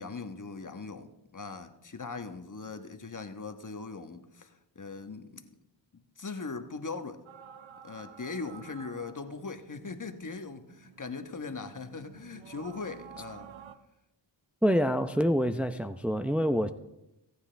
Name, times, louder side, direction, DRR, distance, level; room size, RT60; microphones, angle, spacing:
voice 1, 0.0-5.6 5.9-7.2 7.8-13.5, left 4 dB, 40° left, 8 dB, 1.3 m, -40 dB
sound 1, 7.3-13.8, right 7 dB, 75° right, 1.0 m, -51 dB
voice 2, 14.6-16.7, equal, 5° right, 8 dB, 0.7 m, -26 dB
23.0 x 9.9 x 3.4 m, 0.90 s
cardioid pair, 40°, 47 cm